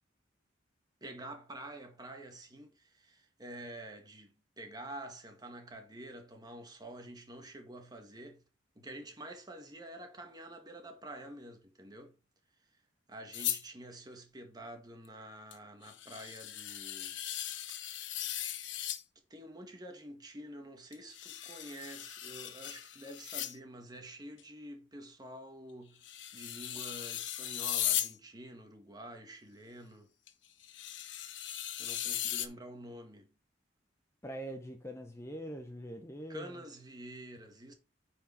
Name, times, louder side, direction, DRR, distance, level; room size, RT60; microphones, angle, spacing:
voice 1, 1.0-8.4 8.7-12.2 13.1-17.2 19.3-30.1 31.8-33.3 36.3-37.7, right 1 dB, 20° right, 1.7 m, -48 dB
sound 1, 13.3-13.6 15.5-15.6 15.8-19.0 20.9-23.6 24.4-24.5 26.0-28.1 30.3-30.4 30.6-32.5, left 12 dB, 85° left, 1.0 m, -37 dB
voice 2, 34.2-36.6, right 1 dB, 15° left, 0.9 m, -43 dB
9.1 x 4.9 x 4.4 m
head